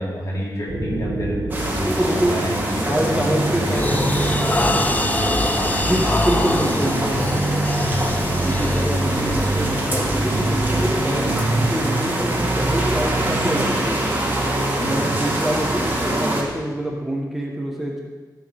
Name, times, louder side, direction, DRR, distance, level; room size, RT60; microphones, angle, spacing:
voice 1, 0.0-5.9 6.3-7.6 14.8-15.1, equal, 50° left, -5 dB, 3.5 m, -29 dB
sound 1, 0.7-12.6, right 1 dB, 70° right, 2.4 m, -28 dB
sound 2, 1.5-16.4, right 1 dB, 25° right, 2.5 m, -24 dB
sound 3, 1.7-1.9 2.4-2.7 3.1-11.2, left 2 dB, 20° left, 0.5 m, -26 dB
voice 2, 1.8-2.4 2.8-4.1 5.8-6.9 8.4-11.3 11.6-14.0 14.9-18.0, right 1 dB, 5° right, -1 dB, 1.3 m, -25 dB
16.0 x 6.4 x 3.5 m, 1.3 s
wide cardioid pair, 95°, 7 cm